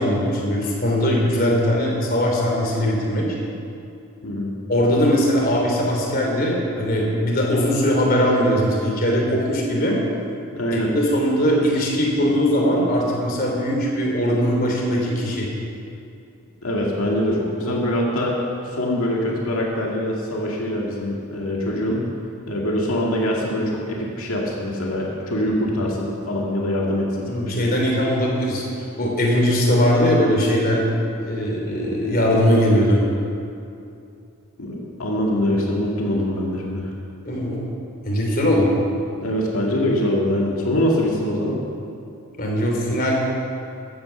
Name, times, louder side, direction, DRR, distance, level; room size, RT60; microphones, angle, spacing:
voice 1, 0.0-3.3 4.7-10.0 10.7-15.5 27.3-30.9 31.2-33.0 37.3-37.6 38.1-38.7 42.4-43.2, equal, 40° left, -2 dB, 3.3 m, -20 dB
voice 2, 10.6-10.9 16.6-18.4 18.6-22.0 22.5-27.5 34.6-36.9 39.2-41.6, left 1 dB, 70° left, -2 dB, 2.1 m, -23 dB
14.5 x 9.4 x 7.0 m, 2.5 s
head